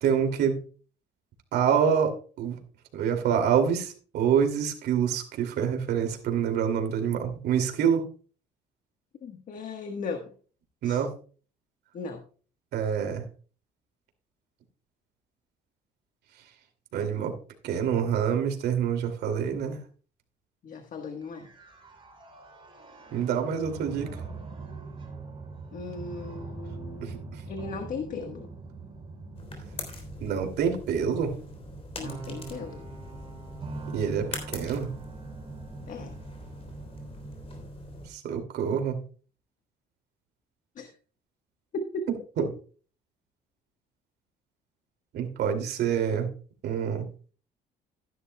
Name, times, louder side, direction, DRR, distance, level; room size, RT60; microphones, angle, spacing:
voice 1, 0.0-0.6 1.5-2.1 2.4-2.6 2.9-8.0 10.8-11.1 12.7-13.2 16.9-17.3 17.6-19.8 23.1-24.1 27.0-27.1 30.2-31.3 33.9-34.9 38.1-39.0 42.4-42.5 45.1-46.3 46.6-47.1, right 8 dB, 75° right, 5 dB, 2.5 m, -26 dB
voice 2, 9.2-10.3 10.8-11.0 11.9-12.2 20.6-21.5 25.7-28.5 32.0-32.9 35.9-36.2 40.8-40.9 41.7-42.0, left 4 dB, 50° left, 6 dB, 1.3 m, -37 dB
sound 1, 21.2-37.6, right 3 dB, 25° right, 5.9 m, -43 dB
sound 2, 29.3-38.1, left 2 dB, 35° left, 3.5 m, -43 dB
13.5 x 11.0 x 2.2 m, 0.40 s
cardioid pair, 110°, 17 cm